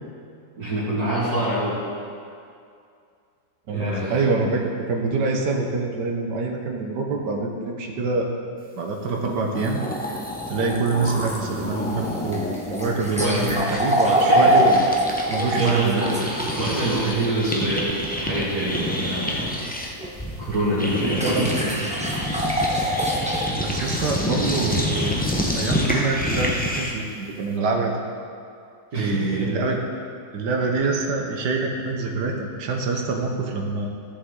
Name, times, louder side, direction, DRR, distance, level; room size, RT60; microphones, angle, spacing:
voice 1, 0.6-1.8 3.7-4.1 13.1-13.6 14.0-14.5 15.5-19.5 20.4-21.9 28.9-29.5, right 1 dB, 65° right, -10 dB, 2.3 m, -26 dB
voice 2, 3.7-8.3 8.7-10.2 10.5-14.8 15.3-16.1 20.8-21.5 23.5-25.2 25.5-27.9 28.9-29.8 30.3-33.9, right 3 dB, 80° right, 1 dB, 1.5 m, -25 dB
sound 1, 9.2-9.3 9.5-15.7 16.0-27.1, left 1 dB, 15° left, 0.3 m, -28 dB
sound 2, 11.3-16.9 20.0-20.1 21.2-23.5, equal, 5° right, 0.7 m, -23 dB
14.0 x 7.0 x 3.7 m, 2.4 s
omnidirectional pair, 1.8 m